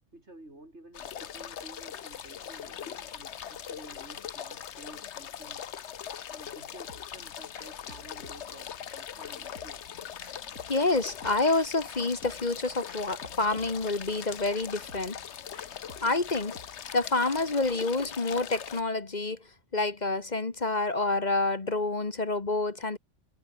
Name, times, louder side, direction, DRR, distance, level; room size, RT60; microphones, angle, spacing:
voice 1, 0.1-5.7 6.3-9.8, right 1 dB, 50° right, 7.9 m, -51 dB
sound 1, 0.9-18.8, left 9 dB, 60° left, 1.1 m, -41 dB
sound 2, 6.9-17.6, left 2 dB, 85° left, 6.1 m, -54 dB
voice 2, 10.7-15.2 16.0-16.5 16.9-19.4 19.7-23.0, left 2 dB, 35° left, 1.5 m, -28 dB
omnidirectional pair, 1.4 m